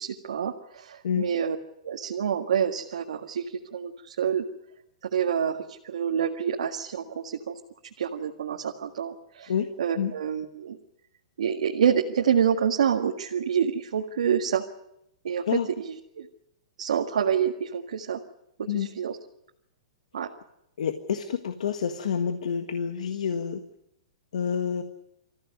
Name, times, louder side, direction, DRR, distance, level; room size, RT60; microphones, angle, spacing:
voice 1, 0.0-1.6 1.8-4.4 5.1-7.6 8.0-9.5 9.8-10.8 11.4-14.6 15.2-15.4 15.8-16.3 16.8-18.2 18.6-19.2 20.1-20.3, right 8 dB, 85° right, 1 dB, 1.8 m, -27 dB
voice 2, 20.8-23.6 24.3-24.8, left 7 dB, 80° left, 8 dB, 1.6 m, -28 dB
26.0 x 15.0 x 9.5 m, 0.83 s
hypercardioid pair, 175°, 4 cm